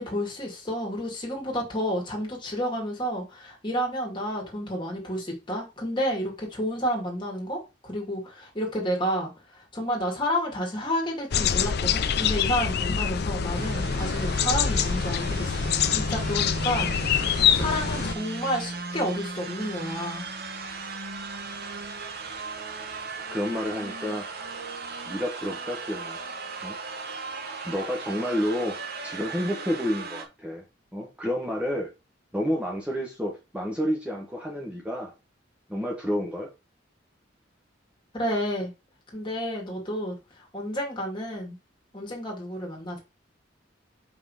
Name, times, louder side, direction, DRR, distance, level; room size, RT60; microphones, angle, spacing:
voice 1, 0.0-9.3 9.7-20.3 38.1-38.7 39.1-40.1 40.5-41.6 41.9-43.0, equal, 25° left, 2.4 m, -30 dB
sound 1, 11.3-18.2, left 7 dB, 60° left, 0.5 m, -25 dB
sound 2, 13.5-30.2, right 3 dB, 55° right, 1.2 m, -36 dB
voice 2, 23.3-24.3 25.1-26.2 26.6-26.8 27.6-28.8 29.0-30.6 30.9-31.9 32.3-35.1 35.7-36.5, equal, 5° right, 1.0 m, -30 dB
5.4 x 3.8 x 4.9 m
head